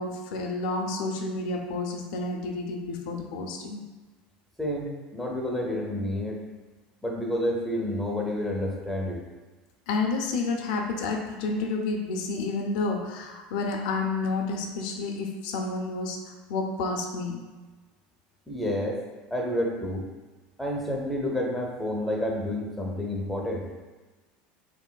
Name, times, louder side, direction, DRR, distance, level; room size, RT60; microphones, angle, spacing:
voice 1, 0.0-3.8 9.9-17.4, left 3 dB, 80° left, 2 dB, 0.4 m, -30 dB
voice 2, 4.6-6.4 7.0-9.2 18.5-19.0 19.3-20.1 20.6-23.7, left 1 dB, ahead, -2 dB, 0.5 m, -29 dB
3.2 x 2.9 x 2.2 m, 1.3 s
supercardioid pair, 125°, 4 cm